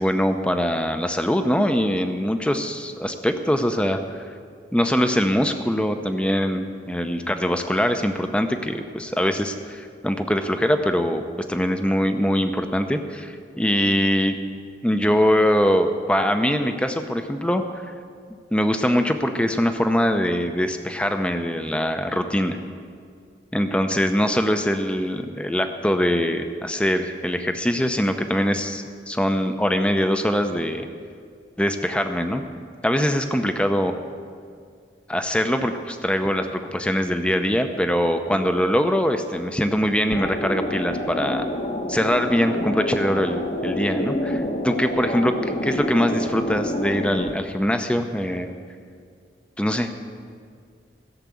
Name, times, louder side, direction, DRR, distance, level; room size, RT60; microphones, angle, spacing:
voice 1, 0.0-4.3 4.7-11.2 11.5-14.4 14.8-17.6 18.5-22.6 23.5-30.9 31.6-32.4 32.8-34.0 35.1-41.5 41.9-48.5 49.6-50.0, equal, 5° left, 7 dB, 0.7 m, -23 dB
sound 1, 40.1-47.3, left 1 dB, 40° left, 1.1 m, -27 dB
16.0 x 7.4 x 8.3 m, 2.2 s
head